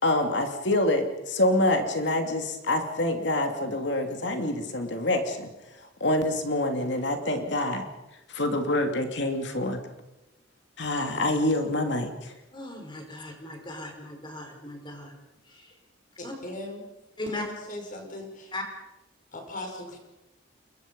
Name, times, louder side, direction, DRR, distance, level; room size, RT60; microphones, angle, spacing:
voice 1, 0.0-5.5 6.0-7.8 8.3-9.8 10.8-12.3, left 1 dB, 65° left, 5 dB, 2.8 m, -26 dB
voice 2, 12.5-15.2 15.4-15.8 16.2-16.3 17.2-17.5 18.5-18.6, left 2 dB, 25° left, 3 dB, 4.9 m, -37 dB
voice 3, 16.2-16.9 17.3-18.5 19.3-20.0, left 1 dB, 45° left, 3 dB, 5.6 m, -39 dB
28.0 x 22.5 x 5.4 m, 0.93 s
head